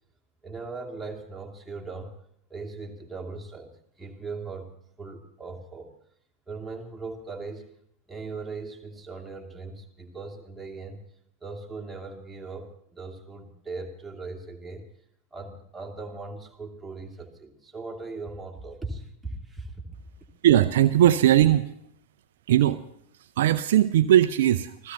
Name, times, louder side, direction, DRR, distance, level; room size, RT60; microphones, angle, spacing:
voice 1, 0.4-2.2 2.5-5.9 6.5-7.7 8.1-11.0 11.4-14.8 15.3-19.7, right 3 dB, 5° right, -1 dB, 2.7 m, -39 dB
voice 2, 20.4-21.7 22.5-22.8 23.4-24.9, right 12 dB, 55° right, 10 dB, 0.6 m, -19 dB
27.0 x 16.5 x 3.0 m, 0.72 s
figure-of-eight pair, 90°, 0 cm